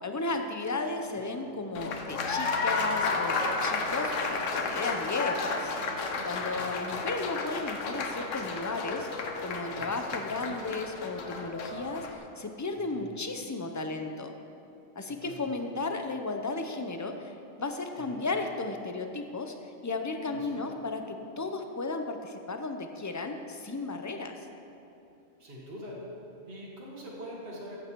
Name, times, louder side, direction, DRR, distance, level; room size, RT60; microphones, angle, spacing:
voice 1, 0.0-5.7 6.2-14.3 15.0-24.5, left 3 dB, 20° left, 5 dB, 0.5 m, -34 dB
Applause, 1.7-12.1, left 3 dB, 80° left, 1.3 m, -32 dB
voice 2, 9.7-10.0 12.9-13.2 15.1-15.5 18.0-18.2 20.3-20.6 25.4-26.0 26.5-27.8, equal, 50° right, -5 dB, 2.0 m, -44 dB
14.5 x 8.3 x 4.6 m, 3.0 s
omnidirectional pair, 1.3 m